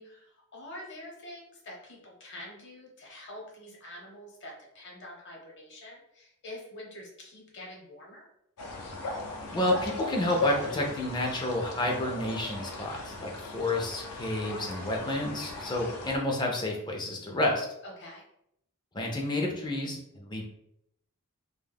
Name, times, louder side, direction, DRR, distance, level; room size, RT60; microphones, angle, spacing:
voice 1, 0.0-8.3 17.8-18.2, left 1 dB, 55° left, -1 dB, 0.8 m, -46 dB
sound 1, 8.6-16.2, left 2 dB, 85° left, 0.5 m, -37 dB
voice 2, 9.5-17.7 18.9-20.4, left 1 dB, 20° left, 0 dB, 0.4 m, -30 dB
2.2 x 2.0 x 3.3 m, 0.76 s
head